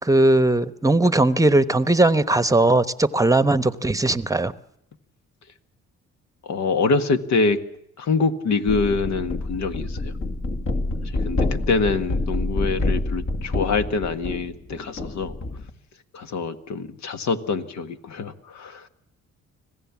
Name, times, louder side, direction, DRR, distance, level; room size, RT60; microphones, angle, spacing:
voice 1, 0.0-4.5, right 2 dB, 10° right, 13 dB, 1.0 m, -19 dB
voice 2, 6.4-7.6 8.0-10.1 11.0-15.4 16.1-18.9, left 4 dB, 65° left, 9 dB, 1.7 m, -25 dB
sound 1, 8.7-15.7, left 2 dB, 45° left, 2.5 m, -27 dB
25.5 x 17.0 x 7.3 m, 0.74 s
cardioid pair, 90°, 30 cm